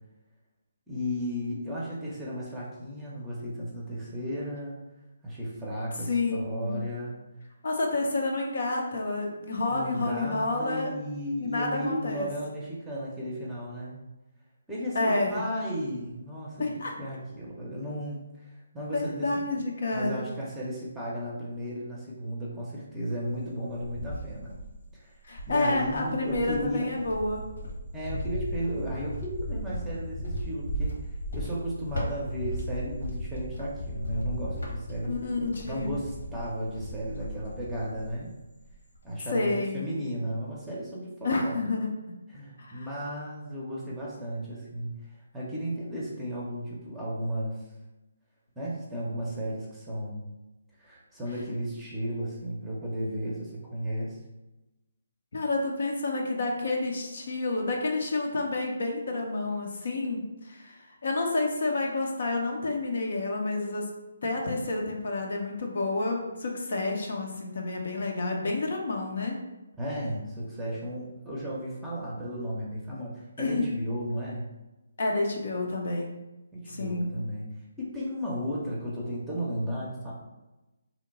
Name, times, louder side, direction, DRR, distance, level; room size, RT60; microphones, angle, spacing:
voice 1, 0.9-4.8 5.2-7.2 9.7-14.0 14.7-16.7 17.0-19.4 19.9-24.5 24.9-25.1 25.5-26.9 27.9-35.1 35.6-38.3 39.0-41.6 42.3-44.9 45.3-47.6 48.6-50.2 50.8-54.2 69.8-74.5 76.5-77.5 77.8-80.1, equal, 10° right, -6 dB, 0.6 m, -34 dB
voice 2, 6.1-6.8 7.6-10.9 11.4-12.3 14.9-15.4 16.6-16.9 18.9-20.3 25.2-27.4 35.0-36.0 39.3-39.9 41.2-41.9 42.6-42.9 55.3-63.8 64.2-69.4 73.4-73.7 75.0-76.1 76.7-77.1, left 2 dB, 60° left, 1 dB, 0.6 m, -29 dB
Cricket, 23.3-24.8 25.3-38.3 38.6-39.1, equal, 80° left, 1.2 m, -36 dB
2.8 x 2.1 x 4.0 m, 1.0 s
figure-of-eight pair, 150°, 0 cm